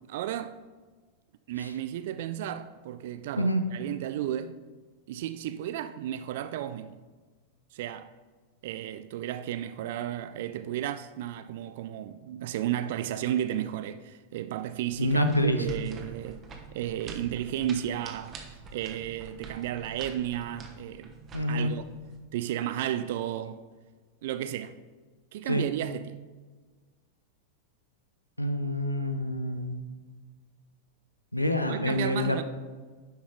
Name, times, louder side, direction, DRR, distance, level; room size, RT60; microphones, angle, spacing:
voice 1, 0.1-0.6 1.5-4.6 5.1-7.0 7.7-8.1 8.6-15.2 15.6-16.4 16.7-21.2 21.5-21.9 22.3-23.6 24.2-24.7 25.3-26.2 31.7-32.4, right 11 dB, 55° right, 0.3 m, -33 dB
sound 1, 14.8-22.2, right 4 dB, 25° right, 1.2 m, -46 dB
voice 2, 15.0-15.7 21.3-21.7 25.5-25.7 28.4-29.8 31.3-32.4, equal, 85° left, 0.5 m, -27 dB
9.3 x 5.8 x 3.8 m
figure-of-eight pair, 90°, 0 cm